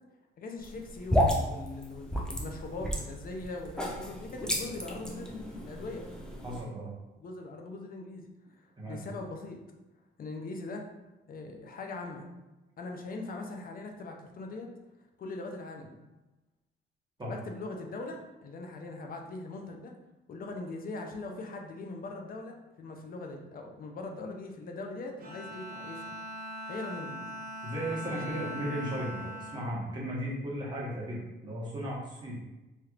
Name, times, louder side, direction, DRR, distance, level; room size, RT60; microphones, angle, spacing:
voice 1, 0.4-6.1 7.2-8.3 8.6-9.6 10.2-10.9 11.3-12.3 12.8-14.7 15.2-16.0 17.2-19.9 20.3-26.2 26.7-27.2 28.3-28.7, left 3 dB, 45° left, 2 dB, 0.6 m, -41 dB
sound 1, 0.6-6.6, equal, 5° left, 0.6 m, -32 dB
voice 2, 6.4-6.9 8.8-9.0 17.2-17.3 27.6-32.4, equal, 20° right, -6 dB, 1.2 m, -36 dB
Bowed string instrument, 25.2-30.7, equal, 50° right, 0.9 m, -41 dB
3.2 x 3.0 x 2.4 m, 1.1 s
cardioid pair, 90°, 20 cm